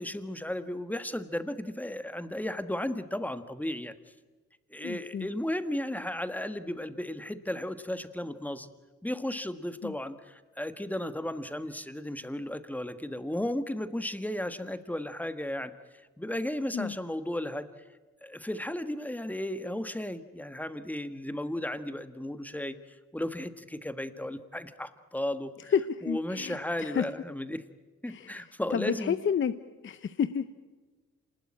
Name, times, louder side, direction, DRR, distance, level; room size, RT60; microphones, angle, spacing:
voice 1, 0.0-3.9 4.7-8.7 9.0-15.7 16.2-17.7 18.2-25.7 26.0-27.6 28.0-29.2, left 1 dB, 5° left, 10 dB, 1.4 m, -34 dB
voice 2, 4.8-5.3 9.8-9.9 16.7-16.9 25.7-27.0 28.1-28.3 28.7-29.5 29.8-30.5, left 7 dB, 40° left, 12 dB, 0.8 m, -30 dB
26.5 x 20.0 x 8.8 m, 1.3 s
cardioid pair, 90°, 30 cm